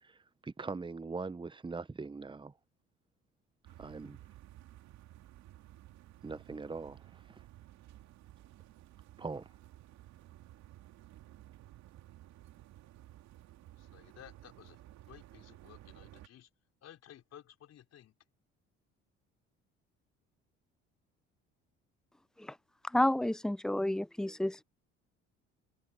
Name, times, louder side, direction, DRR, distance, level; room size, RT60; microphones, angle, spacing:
voice 1, 0.0-2.5 3.8-4.2 6.2-7.4 9.2-9.5, right 4 dB, 15° right, 1.1 m, -42 dB
sound 1, 3.6-16.3, right 14 dB, 70° right, 2.6 m, -55 dB
voice 2, 13.8-14.8 15.0-16.5 16.8-18.1, left 10 dB, 60° left, 4.6 m, -55 dB
voice 3, 22.9-24.6, left 1 dB, ahead, 0.5 m, -30 dB
supercardioid pair, 70°, 29 cm